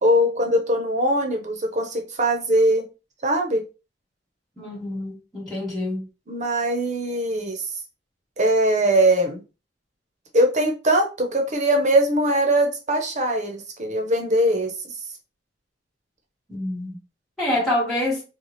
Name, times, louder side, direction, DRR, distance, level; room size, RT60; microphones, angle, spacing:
voice 1, 0.0-2.9 3.2-3.6 6.3-7.6 8.4-9.4 10.3-14.7, right 1 dB, 40° right, 0.8 m, -21 dB
voice 2, 4.6-6.0 16.5-17.0 17.4-18.2, left 1 dB, ahead, 1.2 m, -26 dB
4.1 x 2.3 x 3.1 m
head